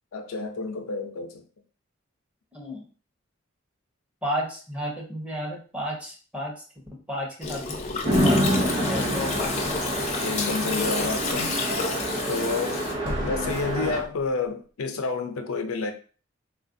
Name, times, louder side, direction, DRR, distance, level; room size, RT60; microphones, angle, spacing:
voice 1, 0.1-1.4 10.2-11.6 12.3-12.8 13.2-15.9, left 4 dB, 85° left, 0.5 m, -29 dB
voice 2, 2.5-2.9 4.2-6.5 7.1-7.8 8.2-8.5 8.8-9.8 13.2-13.5, equal, 5° right, 0.8 m, -32 dB
Gurgling, 7.4-12.9, left 4 dB, 35° left, 0.5 m, -31 dB
Chatter / Traffic noise roadway noise / Train, 8.0-14.0, equal, 30° right, 1.0 m, -27 dB
sound 1, 13.0-14.5 14.9-15.0, equal, 60° right, 1.2 m, -36 dB
3.6 x 2.4 x 2.6 m
head